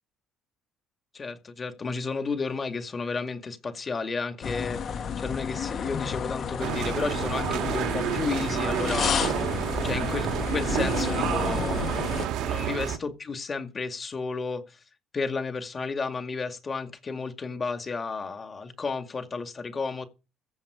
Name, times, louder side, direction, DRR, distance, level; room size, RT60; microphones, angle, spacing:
voice 1, 1.1-4.8 5.2-9.2 9.8-14.6 15.1-20.1, left 4 dB, 25° left, 2.2 m, -32 dB
sound 1, 4.4-12.3, left 7 dB, 45° left, 1.4 m, -31 dB
sound 2, 6.6-13.0, right 10 dB, 75° right, 1.8 m, -29 dB
15.0 x 7.9 x 5.1 m
cardioid pair, 130°, 0 cm